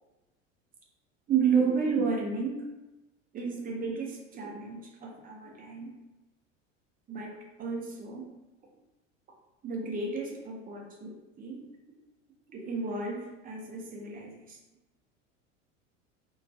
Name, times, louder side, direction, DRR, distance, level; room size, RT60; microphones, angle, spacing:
voice 1, 1.3-2.7 3.3-5.9 7.1-8.3 9.6-11.7 12.5-14.6, right 5 dB, 25° right, 0 dB, 0.5 m, -32 dB
2.5 x 2.3 x 2.3 m, 1.0 s
hypercardioid pair, 80°, 38 cm